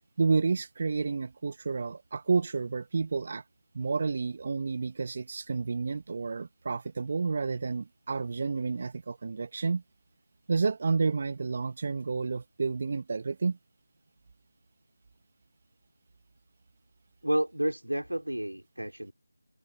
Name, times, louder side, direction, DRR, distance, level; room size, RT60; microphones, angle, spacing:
voice 1, 0.2-3.4 3.7-9.8 10.5-13.6, right 4 dB, 35° right, 1.6 m, -30 dB
voice 2, 17.2-19.1, right 1 dB, 85° right, 3.8 m, -30 dB
open air
figure-of-eight pair, 165°, 0 cm